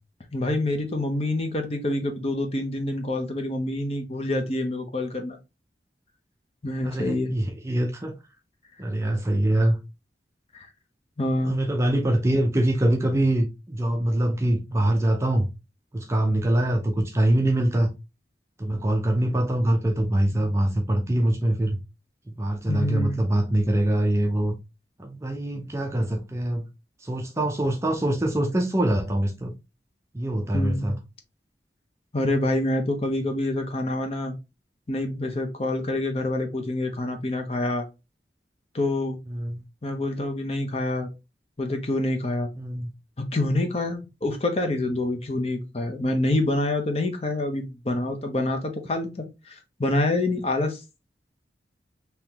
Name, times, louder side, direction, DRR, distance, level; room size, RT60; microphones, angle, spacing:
voice 1, 0.3-5.4 6.6-7.4 10.5-10.7 11.2-11.6 22.7-23.2 27.4-27.5 30.5-31.0 32.1-34.3 34.9-37.8 38.7-39.2 39.8-41.1 41.6-42.5 43.3-50.8, left 1 dB, 35° left, 0.7 m, -26 dB
voice 2, 6.8-8.1 8.8-9.8 11.4-15.5 15.9-17.9 18.6-21.8 22.4-24.5 25.0-26.6 27.0-29.5 30.1-31.0 39.3-39.6 42.6-42.9, right 1 dB, 15° right, 0.5 m, -24 dB
3.7 x 2.9 x 2.9 m
head